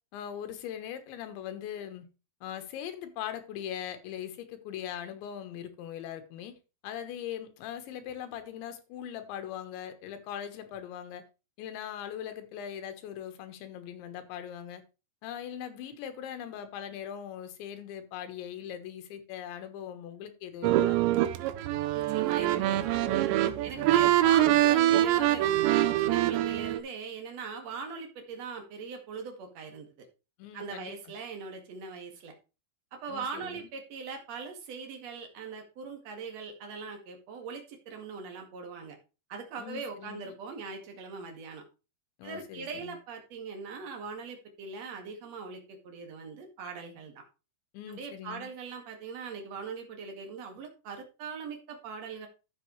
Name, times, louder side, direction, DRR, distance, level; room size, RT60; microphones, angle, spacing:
voice 1, 0.1-2.1 2.4-6.6 6.8-11.2 11.6-14.8 15.2-21.0 23.6-24.1 30.4-30.9 33.1-33.7 39.6-40.3 42.2-43.0 47.7-48.5, left 10 dB, 85° left, 3.6 m, -40 dB
sound 1, 20.6-26.8, right 13 dB, 85° right, 3.0 m, -24 dB
voice 2, 21.9-23.1 23.6-30.1 30.5-32.3 32.9-39.0 39.3-41.6 42.2-47.2 47.9-52.3, right 5 dB, 45° right, 2.5 m, -41 dB
12.0 x 7.6 x 3.2 m
omnidirectional pair, 5.1 m